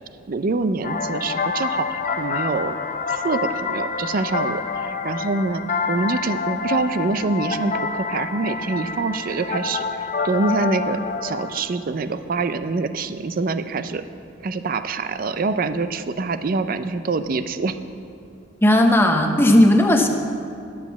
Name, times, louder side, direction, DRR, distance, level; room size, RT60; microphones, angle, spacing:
voice 1, 0.3-2.8 3.1-5.6 5.9-14.0 14.4-17.8, right 3 dB, 45° right, 11 dB, 0.4 m, -25 dB
sound 1, 0.8-11.6, left 5 dB, 45° left, 0.6 m, -27 dB
voice 2, 18.6-20.1, left 1 dB, 10° left, 3 dB, 0.8 m, -15 dB
10.5 x 7.3 x 7.0 m, 2.6 s
head